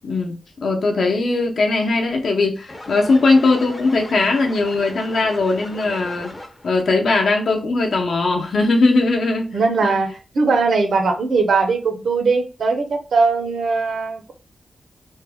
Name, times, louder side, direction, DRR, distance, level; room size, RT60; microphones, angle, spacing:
voice 1, 0.0-6.3 6.6-9.6 9.8-9.9, left 3 dB, 65° left, 0.7 m, -19 dB
sound 1, 2.7-6.8, left 1 dB, 15° left, 0.6 m, -37 dB
voice 2, 9.5-10.1 10.3-14.3, right 4 dB, 70° right, 0.7 m, -19 dB
3.3 x 2.2 x 3.4 m
wide cardioid pair, 170°, 0 cm